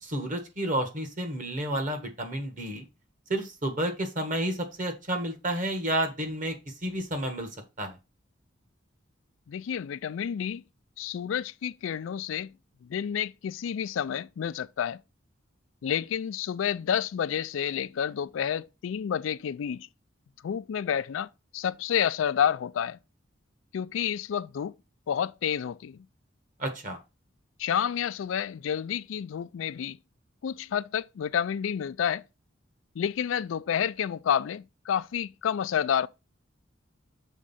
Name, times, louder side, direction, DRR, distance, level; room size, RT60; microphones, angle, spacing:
voice 1, 0.0-2.9 3.3-7.5 7.8-8.0 26.6-27.0, right 1 dB, 40° right, 1.5 m, -31 dB
voice 2, 9.5-10.6 11.0-12.5 12.8-15.0 15.8-19.9 20.4-23.0 23.7-24.7 25.1-26.0 27.6-30.0 30.4-32.2 33.0-36.1, left 8 dB, 90° left, 0.3 m, -29 dB
6.3 x 3.6 x 5.6 m
head